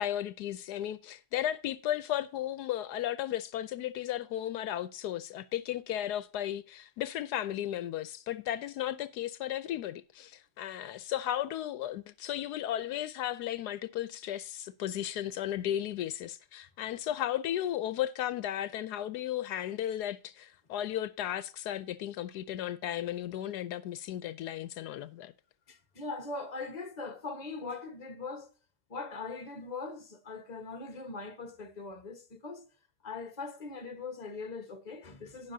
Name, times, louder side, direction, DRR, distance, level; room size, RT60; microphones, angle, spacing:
voice 1, 0.0-25.3, left 12 dB, 80° left, 1.1 m, -35 dB
voice 2, 25.7-28.5 28.9-32.6 33.0-35.5, left 3 dB, 30° left, 1.3 m, -41 dB
17.5 x 6.0 x 2.7 m
omnidirectional pair, 1.7 m